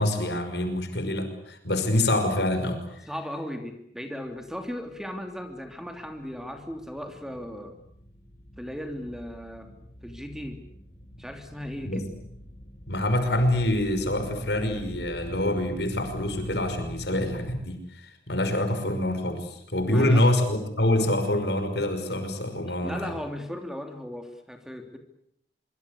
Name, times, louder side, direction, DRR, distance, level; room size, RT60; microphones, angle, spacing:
voice 1, 0.0-2.8 11.8-12.1 12.9-23.1, left 1 dB, 70° left, 8 dB, 5.7 m, -26 dB
voice 2, 3.1-7.7 8.6-9.7 10.0-10.6 11.2-12.1 19.9-20.4 22.8-25.0, equal, 5° right, 6 dB, 3.0 m, -37 dB
sound 1, 4.4-17.6, left 1 dB, 55° left, 6.5 m, -44 dB
25.0 x 24.5 x 8.4 m, 0.71 s
head